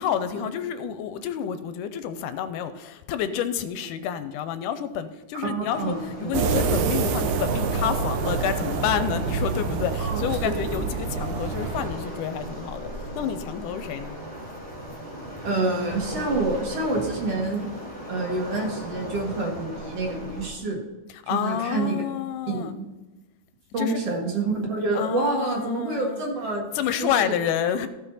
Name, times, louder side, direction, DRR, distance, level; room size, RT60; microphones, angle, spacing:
voice 1, 0.0-14.2 21.1-22.7 23.8-24.0 24.9-26.3 26.7-27.9, left 9 dB, 85° left, 11 dB, 2.1 m, -29 dB
voice 2, 5.4-6.3 10.0-10.5 15.4-17.7 18.1-20.8 21.3-22.0 22.5-22.9 23.7-26.7 27.0-27.3, right 2 dB, 55° right, -1 dB, 2.6 m, -27 dB
Waves surf, 5.7-20.5, equal, 5° left, 2.5 m, -38 dB
sound 1, 6.3-11.9, right 5 dB, 85° right, 2.3 m, -26 dB
15.0 x 5.5 x 4.1 m, 1.1 s
omnidirectional pair, 3.7 m